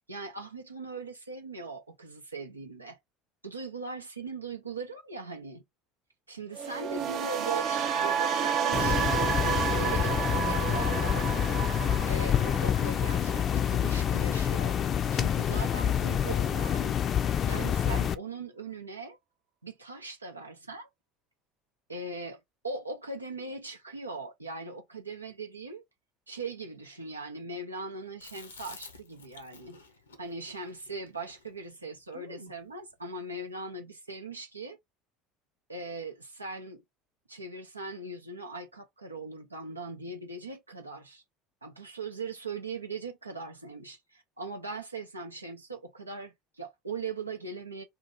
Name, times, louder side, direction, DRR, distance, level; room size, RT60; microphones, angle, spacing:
voice 1, 0.1-3.0 3.4-5.6 6.3-11.3 12.1-14.8 15.1-17.0 17.2-19.2 19.6-20.9 21.9-25.8 26.3-29.8 30.2-34.8 35.7-36.8 37.3-41.2 41.6-47.8, right 3 dB, 90° right, 0.6 m, -40 dB
sound 1, 6.5-14.6 14.9-15.3, right 7 dB, 50° right, 0.6 m, -31 dB
sound 2, 8.7-18.1, left 9 dB, 40° left, 0.4 m, -27 dB
Chewing mastication, 28.2-32.6, left 4 dB, 80° left, 0.7 m, -50 dB
2.8 x 2.5 x 3.7 m
figure-of-eight pair, 70°, 0 cm